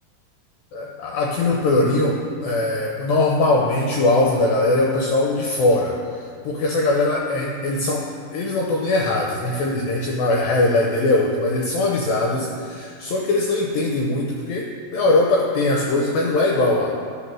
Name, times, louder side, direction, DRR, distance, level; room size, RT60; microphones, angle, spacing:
voice 1, 0.7-16.9, left 2 dB, 80° left, -1 dB, 2.1 m, -21 dB
10.5 x 4.2 x 6.2 m, 2.2 s
omnidirectional pair, 4.7 m